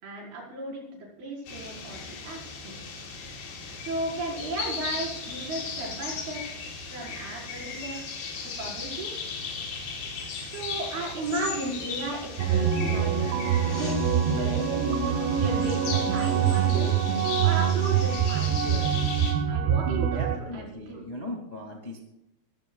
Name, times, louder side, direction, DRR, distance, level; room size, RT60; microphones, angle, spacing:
voice 1, 0.0-2.8 3.8-6.4 6.9-8.2 8.4-9.1 10.4-14.6 15.3-16.9 17.4-19.0 19.5-21.0, right 2 dB, 55° right, -3 dB, 6.6 m, -35 dB
sound 1, 1.5-19.3, left 5 dB, 80° left, 5.4 m, -37 dB
sound 2, 11.9-17.2, left 5 dB, 55° left, 6.0 m, -47 dB
sound 3, 12.4-20.4, right 8 dB, 75° right, 3.2 m, -25 dB
voice 2, 20.1-22.0, left 1 dB, 40° left, 0 dB, 0.5 m, -38 dB
20.5 x 15.5 x 2.4 m, 0.84 s
omnidirectional pair, 5.2 m